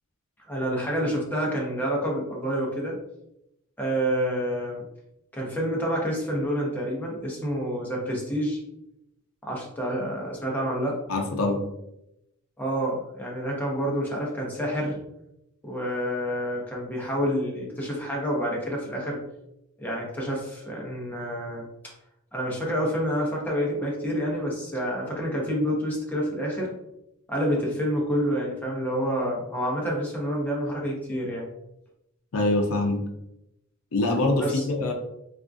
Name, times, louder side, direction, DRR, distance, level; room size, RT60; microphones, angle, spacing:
voice 1, 0.5-3.0 3.8-4.8 5.3-8.6 9.4-11.0 12.6-15.0 15.6-19.2 19.8-21.7 22.3-26.7 27.3-31.5 34.4-34.6, equal, 10° left, -3 dB, 0.7 m, -28 dB
voice 2, 11.1-11.6 32.3-33.0 33.9-34.9, left 2 dB, 75° left, 3 dB, 0.5 m, -24 dB
3.5 x 2.4 x 2.4 m, 0.84 s
head